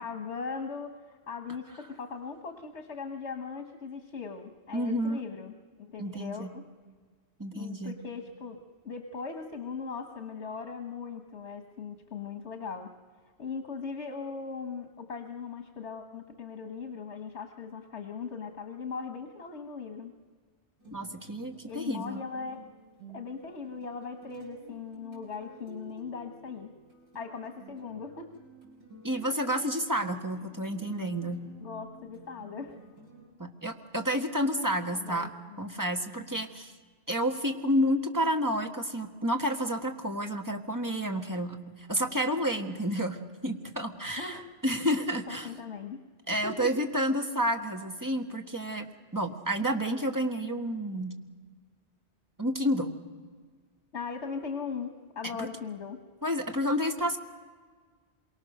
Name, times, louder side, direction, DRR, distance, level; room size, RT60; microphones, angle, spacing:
voice 1, 0.0-5.5 5.8-6.7 7.5-12.9 13.4-20.1 21.6-22.6 23.1-26.7 27.1-28.3 31.6-32.8 34.9-35.6 44.2-44.5 45.3-46.0 46.4-46.7 53.9-56.0, left 5 dB, 75° left, 6 dB, 1.6 m, -39 dB
voice 2, 4.7-5.2 6.0-6.5 7.4-7.9 20.9-22.2 29.0-31.5 33.4-35.3 35.6-36.7 37.1-45.5 46.3-48.9 49.1-51.1 52.4-52.9 55.4-55.5 56.2-57.2, equal, 15° right, 4 dB, 1.6 m, -30 dB
sound 1, 20.8-33.3, right 2 dB, 50° right, 7.2 m, -52 dB
27.0 x 23.5 x 6.6 m, 1.5 s
omnidirectional pair, 1.2 m